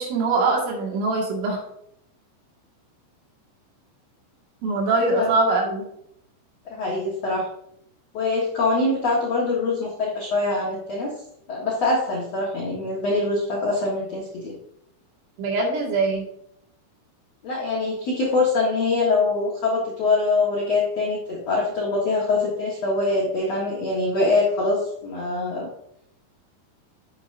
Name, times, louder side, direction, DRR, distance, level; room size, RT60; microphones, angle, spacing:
voice 1, 0.0-1.6 4.6-5.9 15.4-16.3, right 3 dB, 80° right, -1 dB, 4.5 m, -22 dB
voice 2, 6.7-7.5 8.1-11.1 11.5-14.5 17.4-25.7, left 3 dB, 90° left, -4 dB, 1.4 m, -24 dB
8.7 x 7.9 x 2.7 m, 0.73 s
omnidirectional pair, 5.6 m